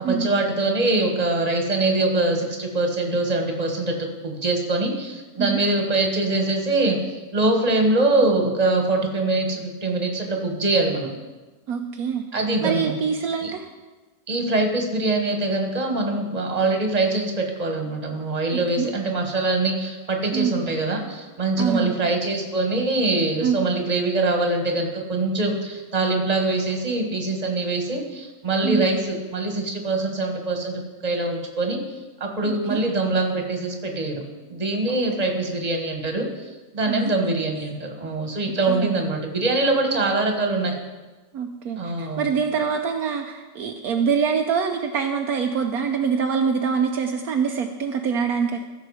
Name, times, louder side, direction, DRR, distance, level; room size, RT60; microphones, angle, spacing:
voice 1, 0.0-7.0 7.3-11.1 12.3-13.0 13.4-13.5 14.3-31.8 32.2-34.2 34.5-36.4 36.7-40.7 41.8-42.3, right 2 dB, 25° right, 3 dB, 1.5 m, -23 dB
voice 2, 11.7-12.3 12.6-13.7 18.8-18.9 20.3-20.5 21.6-22.0 23.4-23.6 28.6-28.9 32.4-32.8 34.9-35.1 36.9-37.1 38.7-38.9 41.3-48.6, right 6 dB, 70° right, 4 dB, 1.1 m, -25 dB
15.5 x 6.6 x 4.9 m, 1.2 s
omnidirectional pair, 1.7 m